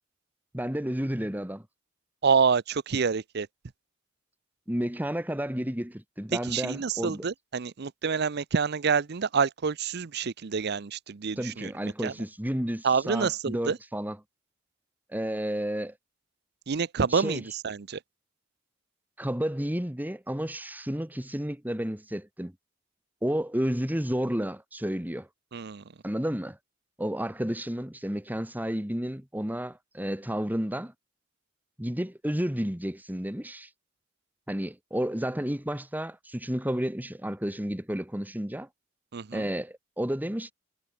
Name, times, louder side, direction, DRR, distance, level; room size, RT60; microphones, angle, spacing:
voice 1, 0.5-1.6 4.7-7.2 11.4-14.2 15.1-15.9 17.1-17.4 19.2-22.5 23.2-25.3 26.0-26.6 27.0-30.9 31.8-33.7 34.5-38.7 39.3-40.5, equal, 10° right, 1.7 m, -31 dB
voice 2, 2.2-3.5 6.3-12.1 12.8-13.8 16.7-18.0 25.5-25.8 39.1-39.5, right 5 dB, 55° right, 0.6 m, -27 dB
head